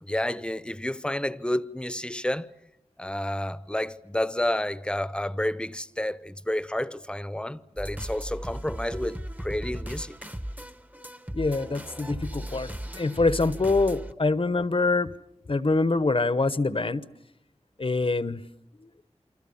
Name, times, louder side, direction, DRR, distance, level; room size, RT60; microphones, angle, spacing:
voice 1, 0.0-2.5 3.0-10.2, left 1 dB, 10° left, 0.9 m, -30 dB
sound 1, 7.8-14.1, equal, 15° right, 1.1 m, -37 dB
voice 2, 11.3-12.7 13.0-15.1 15.5-17.0 17.8-18.4, left 3 dB, 50° left, 1.0 m, -25 dB
28.0 x 26.0 x 7.1 m
wide cardioid pair, 75°, 12 cm